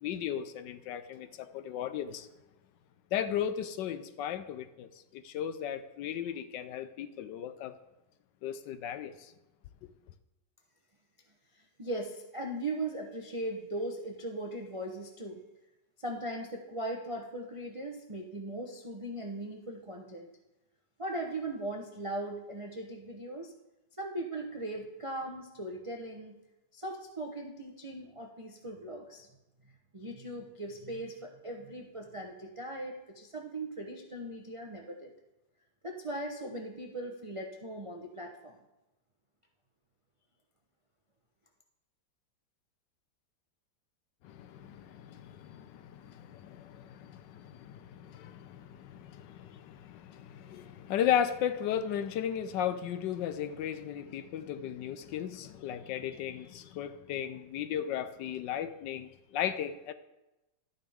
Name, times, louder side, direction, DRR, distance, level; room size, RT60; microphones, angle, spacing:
voice 1, 0.0-2.3 3.1-7.7 8.4-9.1 44.2-59.9, left 9 dB, 75° left, 1.2 m, -35 dB
voice 2, 11.5-15.4 16.0-20.3 21.0-23.5 24.0-26.4 26.7-29.3 29.6-35.1 35.8-38.6, right 1 dB, 45° right, 0.4 m, -39 dB
12.5 x 9.3 x 3.5 m
omnidirectional pair, 2.1 m